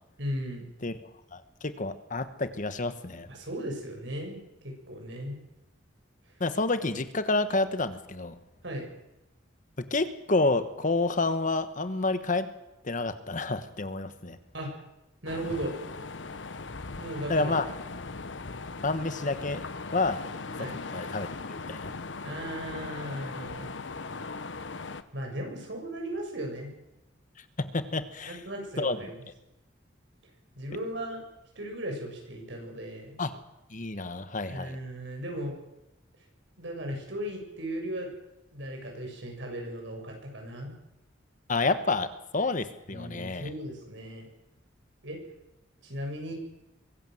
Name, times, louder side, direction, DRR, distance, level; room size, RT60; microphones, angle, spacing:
voice 1, 0.2-0.7 3.3-5.4 8.6-8.9 14.5-14.8 15.2-15.7 17.0-17.5 20.6-20.8 22.2-23.8 25.1-26.7 28.3-29.1 30.6-31.2 31.6-33.2 34.5-35.6 36.6-38.1 38.5-40.7 42.9-44.3 45.0-45.2 45.8-46.3, right 1 dB, 70° right, 2 dB, 7.3 m, -36 dB
voice 2, 1.3-3.3 6.4-8.4 9.8-12.5 12.8-14.4 17.3-17.6 18.8-19.6 19.9-20.2 20.6-21.9 27.6-28.4 28.8-29.1 33.2-33.3 33.7-34.8 41.5-43.5, left 3 dB, 45° left, 11 dB, 1.4 m, -29 dB
sound 1, 15.3-25.0, left 3 dB, 75° left, 1.1 m, -39 dB
23.5 x 15.5 x 7.9 m, 0.90 s
head